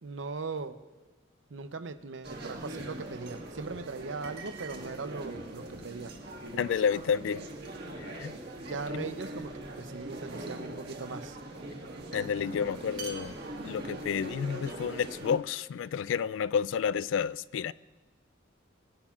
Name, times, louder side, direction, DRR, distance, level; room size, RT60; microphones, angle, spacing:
voice 1, 0.0-0.8 1.5-6.1 8.6-11.4, right 4 dB, 80° right, 0.7 m, -39 dB
sound 1, 2.2-15.4, right 1 dB, 60° right, 1.7 m, -41 dB
voice 2, 6.5-7.4 8.0-8.4 8.9-9.0 12.1-13.4 13.6-17.7, left 7 dB, 80° left, 0.3 m, -30 dB
21.5 x 11.5 x 2.4 m
head